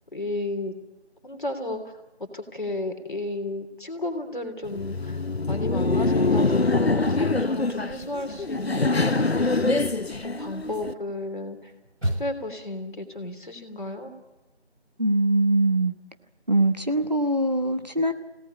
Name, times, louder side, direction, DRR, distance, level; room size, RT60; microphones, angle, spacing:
voice 1, 0.1-0.7 1.2-1.8 2.3-5.2 5.5-9.9 10.2-11.6 12.2-14.1, left 2 dB, 45° left, 5 dB, 3.2 m, -33 dB
Laughter, 4.7-10.9, left 3 dB, 65° left, 1.0 m, -24 dB
sound 1, 11.3-12.7, equal, 90° right, 5.2 m, -36 dB
voice 2, 15.0-15.9 16.5-18.1, right 1 dB, 40° right, 8 dB, 1.0 m, -22 dB
24.5 x 18.0 x 8.6 m, 1.0 s
figure-of-eight pair, 175°, 33 cm